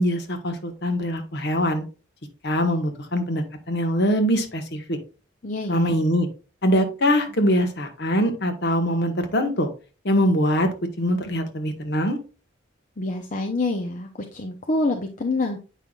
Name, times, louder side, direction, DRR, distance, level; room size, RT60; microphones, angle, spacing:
voice 1, 0.0-1.8 2.4-5.0 5.7-6.3 6.6-9.7 10.0-10.7 11.0-12.2, equal, 55° left, 6 dB, 1.3 m, -23 dB
voice 2, 5.4-6.0 13.0-15.6, left 2 dB, 40° left, 2 dB, 0.7 m, -26 dB
8.3 x 5.6 x 2.4 m, 0.33 s
head